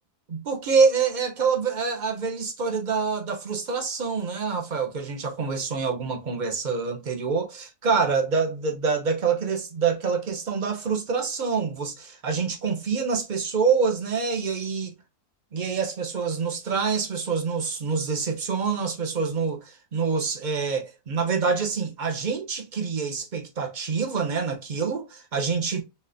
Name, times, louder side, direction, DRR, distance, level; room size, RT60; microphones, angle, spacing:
voice 1, 0.3-14.9 15.5-25.8, right 5 dB, 40° right, 0.7 m, -26 dB
4.2 x 3.8 x 2.6 m
omnidirectional pair, 1.7 m